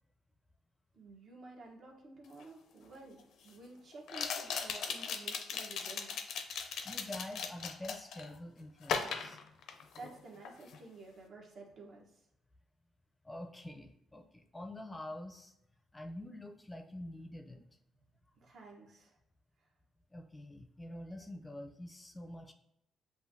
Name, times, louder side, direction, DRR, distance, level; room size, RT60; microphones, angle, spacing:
voice 1, 0.9-6.2 10.0-12.1 18.4-19.2, right 3 dB, 55° right, -1 dB, 1.1 m, -52 dB
sound 1, 2.4-2.5 4.1-8.3 8.8-10.2 10.4-10.8, left 6 dB, 75° left, 0.5 m, -38 dB
voice 2, 6.8-9.4 13.2-15.5 15.9-17.6 20.1-22.5, left 1 dB, 15° left, 4 dB, 0.5 m, -46 dB
7.6 x 2.6 x 2.7 m, 0.78 s
cardioid pair, 90°, 0 cm